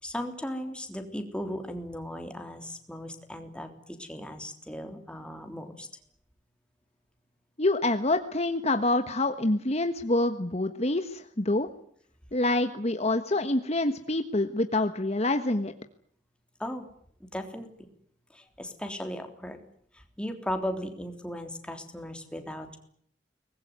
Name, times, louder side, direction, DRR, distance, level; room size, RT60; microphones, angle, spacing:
voice 1, 0.0-5.9 16.6-16.8 17.3-17.9 18.3-19.6 19.9-22.8, equal, 5° left, 5 dB, 3.5 m, -37 dB
voice 2, 7.6-11.7 12.3-15.7, left 2 dB, 40° left, 8 dB, 1.4 m, -26 dB
24.0 x 20.5 x 9.5 m, 0.66 s
head